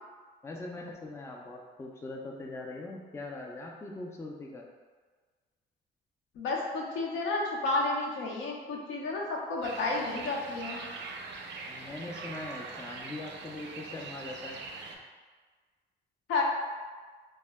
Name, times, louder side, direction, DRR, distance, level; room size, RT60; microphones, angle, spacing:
voice 1, 0.4-4.7 11.7-14.6, left 2 dB, 15° left, 0 dB, 0.3 m, -41 dB
voice 2, 6.4-10.8 16.3-16.4, left 3 dB, 75° left, -1 dB, 0.5 m, -31 dB
sound 1, 9.6-15.0, right 4 dB, 65° right, 0.4 m, -42 dB
2.1 x 2.1 x 3.3 m, 1.4 s
cardioid pair, 90°, 20 cm